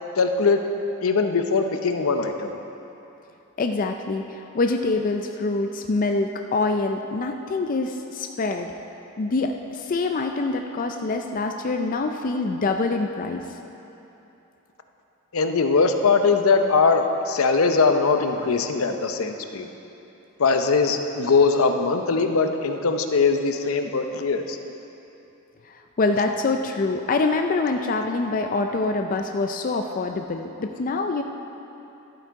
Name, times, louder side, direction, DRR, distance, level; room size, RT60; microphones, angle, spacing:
voice 1, 0.2-0.6 1.0-2.5 15.3-19.7 20.4-24.6, left 4 dB, 80° left, 6 dB, 0.7 m, -21 dB
voice 2, 3.6-8.7 9.2-13.4 25.7-31.2, left 3 dB, 40° left, 4 dB, 0.4 m, -25 dB
11.5 x 7.8 x 4.7 m, 2.9 s
head